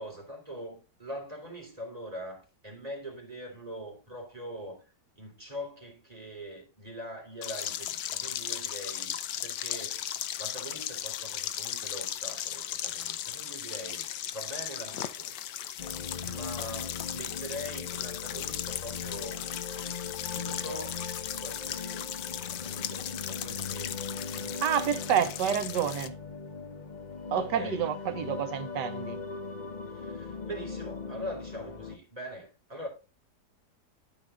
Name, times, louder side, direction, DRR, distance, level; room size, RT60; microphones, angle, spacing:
voice 1, 0.0-4.8 5.1-10.0 10.4-15.9 16.1-19.4 20.3-22.2 22.5-24.0 24.3-25.2 27.4-27.8 29.9-32.9, equal, 20° right, 3.3 m, -43 dB
sound 1, 7.4-26.1, left 11 dB, 90° left, 1.3 m, -37 dB
sound 2, 15.8-32.0, left 5 dB, 35° left, 0.8 m, -40 dB
voice 2, 24.6-26.1 27.3-29.2, right 8 dB, 90° right, 1.6 m, -29 dB
12.5 x 5.8 x 2.4 m
omnidirectional pair, 1.8 m